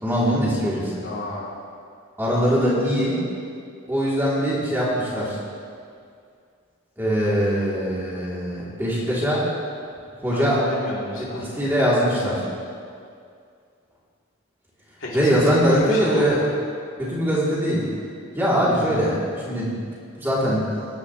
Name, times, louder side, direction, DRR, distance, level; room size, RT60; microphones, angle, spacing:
voice 1, 0.0-1.0 2.2-3.2 3.9-5.4 7.0-9.5 10.2-10.6 11.2-12.5 15.1-16.4 17.0-17.9 18.3-19.9 20.2-20.6, equal, 10° right, -7 dB, 2.9 m, -22 dB
voice 2, 1.0-1.5 10.3-11.5 15.0-16.5, equal, 65° left, -5 dB, 2.8 m, -30 dB
19.5 x 10.5 x 3.1 m, 2.3 s
head